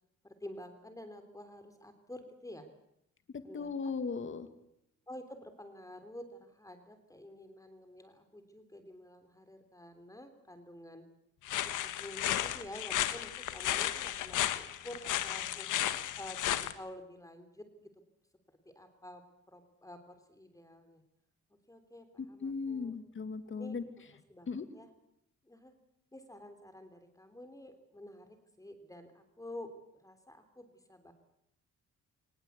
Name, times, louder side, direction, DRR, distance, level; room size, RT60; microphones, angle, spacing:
voice 1, 0.2-2.7 3.4-3.9 5.1-11.1 11.6-15.7 16.2-17.9 18.6-21.0 21.7-23.0 23.5-23.8 24.3-24.9 25.4-25.7 26.1-31.1, left 1 dB, 10° left, 8 dB, 3.4 m, -49 dB
voice 2, 3.3-4.5 22.4-23.8 24.5-24.6, left 5 dB, 40° left, 10 dB, 2.3 m, -37 dB
sound 1, 11.5-16.7, left 12 dB, 80° left, 1.6 m, -34 dB
23.5 x 20.0 x 8.2 m, 0.78 s
cardioid pair, 90°, 30 cm